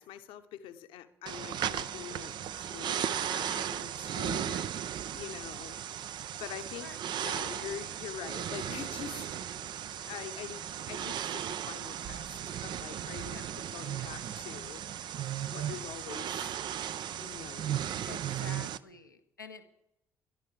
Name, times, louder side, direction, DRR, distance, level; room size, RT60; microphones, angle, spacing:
voice 1, 0.0-4.6 5.1-5.8 6.4-6.9 7.2-9.3 10.0-14.8 15.5-16.6 17.2-18.7, left 10 dB, 60° left, 10 dB, 1.0 m, -45 dB
sound 1, 1.3-18.8, right 10 dB, 45° right, 0.5 m, -36 dB
voice 2, 4.3-4.7 6.8-7.1 9.3-9.4 13.2-13.6 15.6-16.0 18.0-19.6, left 4 dB, 90° left, 5 dB, 0.9 m, -50 dB
23.0 x 11.5 x 3.3 m, 0.80 s
figure-of-eight pair, 50°, 10 cm